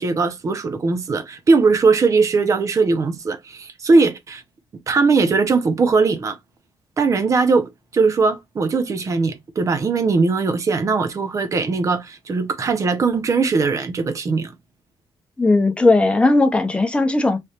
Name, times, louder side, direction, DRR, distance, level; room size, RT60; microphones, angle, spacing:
voice 1, 0.0-4.4 4.9-6.4 7.0-14.5, right 4 dB, 40° right, 0.8 m, -19 dB
voice 2, 15.4-17.4, left 2 dB, 15° left, 0.7 m, -17 dB
3.3 x 3.0 x 2.9 m
cardioid pair, 135°, 9 cm